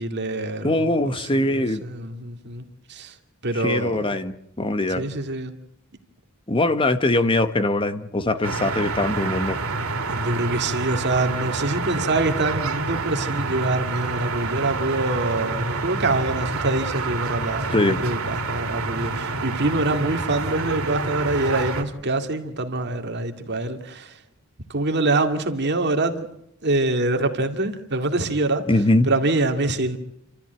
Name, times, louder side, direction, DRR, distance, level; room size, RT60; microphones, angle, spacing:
voice 1, 0.0-2.6 2.9-3.1 3.4-4.2 5.0-5.5 10.1-24.1 24.7-26.3 26.6-28.6 29.0-30.0, right 2 dB, 50° right, 2.2 m, -25 dB
voice 2, 0.6-1.8 3.5-5.1 6.5-9.6 17.7-18.0 28.7-29.1, left 2 dB, 25° left, 1.0 m, -22 dB
sound 1, 8.4-21.8, right 3 dB, 80° right, 2.7 m, -28 dB
29.0 x 13.5 x 9.3 m
head